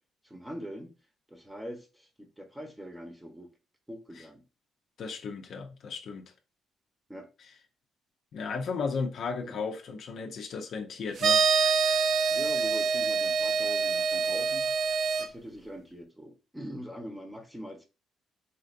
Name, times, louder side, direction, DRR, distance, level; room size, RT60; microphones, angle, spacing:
voice 1, 0.2-0.9 1.3-3.5 3.9-4.4 7.1-7.3 9.4-9.6 12.3-14.7 15.2-17.8, equal, 5° right, 0.9 m, -43 dB
voice 2, 5.0-6.2 8.3-11.4, left 5 dB, 65° left, 0.6 m, -35 dB
sound 1, 11.2-15.3, right 5 dB, 60° right, 0.5 m, -26 dB
4.2 x 2.6 x 2.5 m
cardioid pair, 90°, 0 cm